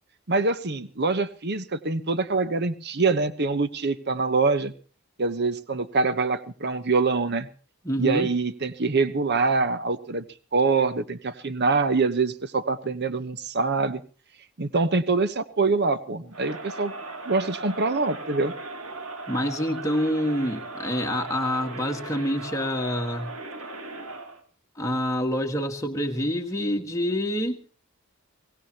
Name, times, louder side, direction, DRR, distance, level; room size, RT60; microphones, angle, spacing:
voice 1, 0.3-4.7 5.2-7.5 8.0-10.2 10.5-14.0 14.6-16.9 17.3-18.5, right 3 dB, 50° right, 13 dB, 1.1 m, -24 dB
voice 2, 7.8-8.3 19.3-23.3 24.7-27.6, equal, 15° left, 2 dB, 1.7 m, -27 dB
Crowd, 16.3-24.4, right 3 dB, 75° right, 2.2 m, -38 dB
23.5 x 17.5 x 3.0 m, 0.39 s
head